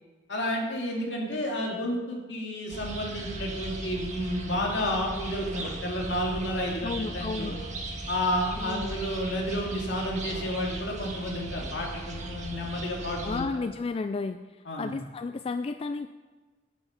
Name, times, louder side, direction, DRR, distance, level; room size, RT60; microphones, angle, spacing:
voice 1, 0.3-7.6 8.1-13.5 14.7-14.9, equal, 70° left, -1 dB, 2.6 m, -31 dB
sound 1, 2.7-13.4, right 2 dB, 40° right, 1.7 m, -37 dB
voice 2, 6.8-7.5 8.6-9.0 13.2-14.4 14.8-16.1, left 4 dB, 30° left, 9 dB, 0.3 m, -32 dB
9.2 x 9.1 x 5.6 m, 1.3 s
head